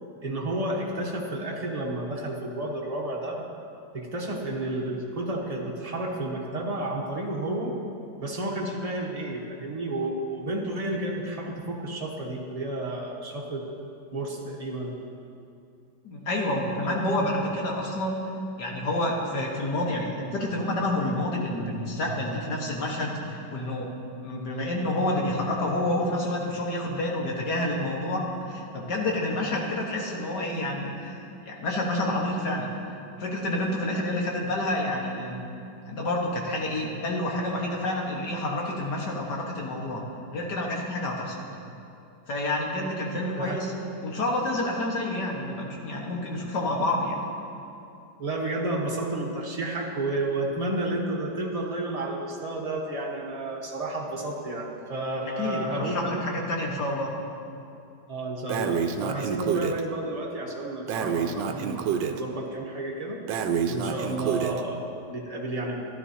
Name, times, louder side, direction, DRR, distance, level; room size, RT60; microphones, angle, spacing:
voice 1, 0.2-3.5 3.9-7.7 8.2-13.6 14.1-14.9 43.4-43.6 48.2-56.1 58.1-63.2 63.7-65.9, right 1 dB, 25° right, -2 dB, 0.9 m, -31 dB
voice 2, 16.0-18.2 18.6-23.9 24.2-32.7 33.2-35.4 35.9-40.0 40.3-41.4 42.3-43.7 44.0-47.2 55.4-57.1, left 1 dB, 65° left, -1 dB, 2.0 m, -28 dB
Breathing, 58.5-59.8 60.9-62.2 63.3-64.6, right 7 dB, 85° right, 1.3 m, -28 dB
12.5 x 12.5 x 2.8 m, 2.6 s
omnidirectional pair, 1.9 m